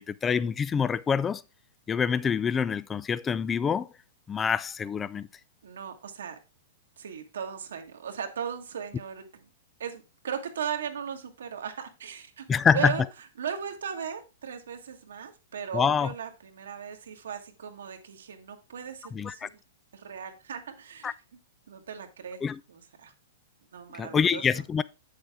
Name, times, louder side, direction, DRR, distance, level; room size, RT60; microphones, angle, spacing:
voice 1, 0.0-1.4 1.9-3.9 4.3-5.3 12.5-12.9 15.7-16.1 19.1-19.5 21.0-21.1 22.4-22.6 23.9-24.8, left 6 dB, 15° left, 0.4 m, -26 dB
voice 2, 5.6-6.4 7.0-9.4 9.8-12.5 12.7-13.0 13.4-19.6 19.9-21.1 21.7-22.4 22.7-23.1 23.7-24.4, right 7 dB, 85° right, 1.6 m, -37 dB
7.9 x 6.6 x 3.6 m
hypercardioid pair, 140°, 0 cm